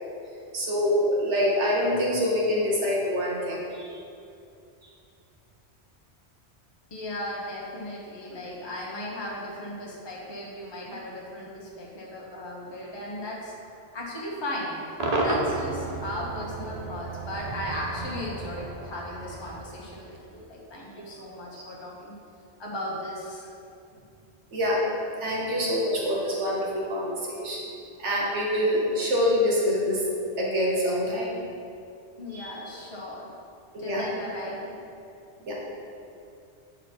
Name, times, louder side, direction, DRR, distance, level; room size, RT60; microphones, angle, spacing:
voice 1, 0.5-4.0 21.5-21.6 24.5-27.6 28.0-30.0 30.4-31.4 32.3-32.5 33.7-34.0 35.4-35.5, left 1 dB, 90° right, -4 dB, 1.5 m, -26 dB
voice 2, 6.9-22.1 22.6-23.5 32.2-33.3 33.8-34.6, left 1 dB, 25° left, -4 dB, 1.0 m, -37 dB
Cheering / Crowd / Fireworks, 15.0-20.3, right 2 dB, 40° right, 0.8 m, -32 dB
9.0 x 4.1 x 4.4 m, 2.5 s
omnidirectional pair, 1.2 m